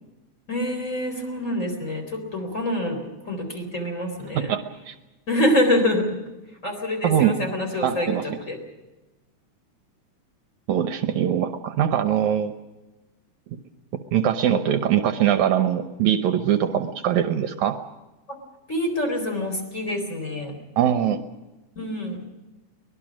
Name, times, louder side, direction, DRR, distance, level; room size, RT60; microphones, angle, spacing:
voice 1, 0.5-4.5 5.3-6.1 6.6-8.6 18.7-20.5 21.8-22.2, left 1 dB, 20° left, 3 dB, 4.1 m, -26 dB
voice 2, 7.0-7.3 7.8-8.4 10.7-12.5 14.1-17.8 20.8-21.2, right 10 dB, 70° right, 8 dB, 2.1 m, -22 dB
23.5 x 20.0 x 6.2 m, 1.1 s
omnidirectional pair, 3.7 m